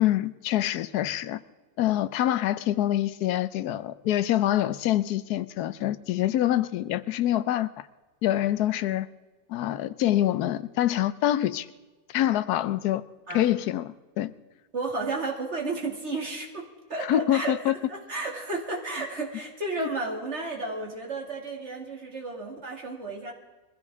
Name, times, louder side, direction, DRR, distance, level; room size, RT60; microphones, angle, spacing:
voice 1, 0.0-1.4 1.8-7.7 8.2-9.1 9.5-11.7 12.1-13.0 13.3-14.3 17.1-17.7 19.8-19.9, left 13 dB, 90° left, 15 dB, 1.2 m, -25 dB
voice 2, 14.7-23.3, right 3 dB, 45° right, 0 dB, 2.7 m, -33 dB
22.5 x 15.0 x 3.6 m, 1.3 s
omnidirectional pair, 1.6 m